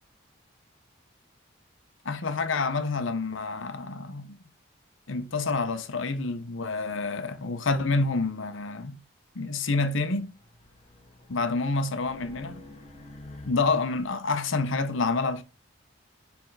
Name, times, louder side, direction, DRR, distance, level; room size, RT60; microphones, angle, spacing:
voice 1, 2.0-4.4 5.1-9.0 9.3-10.3 11.3-12.6 13.4-15.4, left 3 dB, 75° left, 0.8 m, -28 dB
Race car auto racing, 9.9-14.1, left 1 dB, 30° left, 0.9 m, -49 dB
6.5 x 3.5 x 4.7 m
head